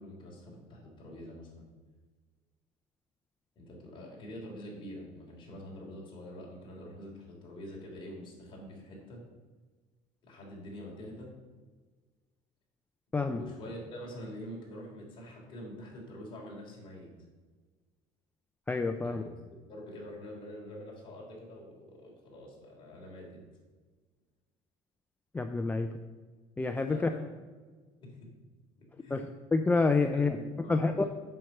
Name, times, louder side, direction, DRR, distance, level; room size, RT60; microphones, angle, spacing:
voice 1, 0.0-1.7 3.5-9.2 10.2-11.3 13.3-17.1 19.0-19.3 19.7-23.4 26.8-27.3 28.0-28.3 28.8-29.3 30.1-31.1, equal, 35° left, -3 dB, 3.2 m, -46 dB
voice 2, 18.7-19.2 25.3-25.9 26.6-27.1 29.1-29.2 29.5-30.4 30.7-31.0, left 3 dB, 10° left, 6 dB, 0.3 m, -27 dB
7.7 x 5.8 x 6.5 m, 1.4 s
cardioid pair, 150°, 14 cm